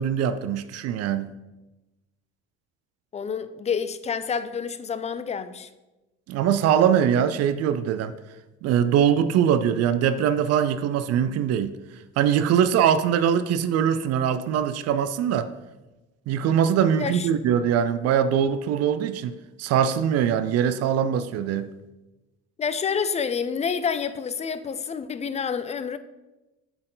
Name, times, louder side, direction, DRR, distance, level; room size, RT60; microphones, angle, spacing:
voice 1, 0.0-1.3 6.3-8.2 8.6-11.7 12.2-15.5 16.3-19.3 19.6-21.7, right 8 dB, 60° right, 0.5 m, -22 dB
voice 2, 3.1-5.7 17.0-17.3 22.6-26.0, left 6 dB, 25° left, 0.4 m, -28 dB
7.8 x 4.3 x 3.8 m
supercardioid pair, 95°, 29 cm